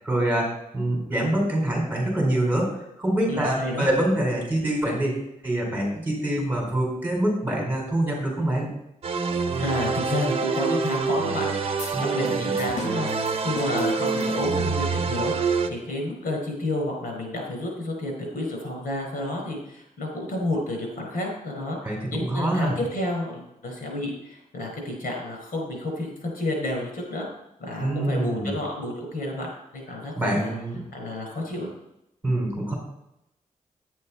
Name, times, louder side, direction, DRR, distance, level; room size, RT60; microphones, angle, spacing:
voice 1, 0.0-2.7 3.0-8.7 11.9-12.5 21.8-22.8 27.8-28.6 30.2-30.8 32.2-32.7, right 1 dB, 15° right, -2 dB, 4.4 m, -25 dB
voice 2, 3.3-3.9 9.6-13.1 13.4-15.3 15.7-27.3 27.6-30.5 30.9-31.7, left 1 dB, 85° left, 1 dB, 5.1 m, -30 dB
sound 1, 9.0-15.7, right 4 dB, 45° right, 1.0 m, -26 dB
sound 2, 11.8-14.9, left 4 dB, 50° left, 1.5 m, -41 dB
11.0 x 9.4 x 4.3 m, 0.83 s
wide cardioid pair, 135°, 14 cm